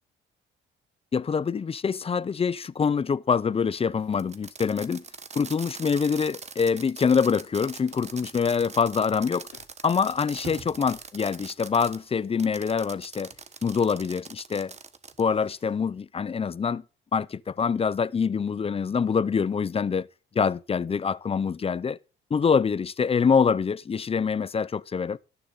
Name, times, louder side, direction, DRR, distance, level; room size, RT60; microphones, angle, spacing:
voice 1, 1.1-5.0 5.4-9.5 9.8-13.3 13.6-14.7 15.2-16.8 17.1-20.1 20.3-22.0 22.3-25.2, left 6 dB, 30° left, 0.5 m, -25 dB
Fireworks, 4.1-12.0 12.4-15.3, right 5 dB, 35° right, 1.2 m, -43 dB
Scratching (performance technique), 7.9-9.2 9.5-9.6 10.0-11.3 11.8-11.9, left 10 dB, 90° left, 3.6 m, -52 dB
sound 1, 10.4-16.7, right 5 dB, 70° right, 3.9 m, -53 dB
18.0 x 6.9 x 4.0 m
cardioid pair, 90°, 20 cm